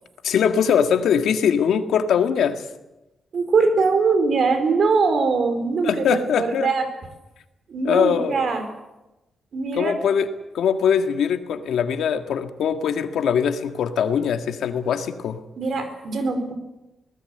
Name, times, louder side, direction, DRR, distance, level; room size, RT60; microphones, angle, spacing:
voice 1, 0.2-2.6 5.8-6.7 7.8-8.4 9.8-10.3 10.5-15.4, left 7 dB, 90° left, 7 dB, 1.8 m, -21 dB
voice 2, 3.3-6.8 7.7-8.6 9.5-9.9 15.6-16.5, right 4 dB, 55° right, 8 dB, 4.5 m, -22 dB
23.5 x 19.0 x 7.9 m, 1.0 s
wide cardioid pair, 130°, 0 cm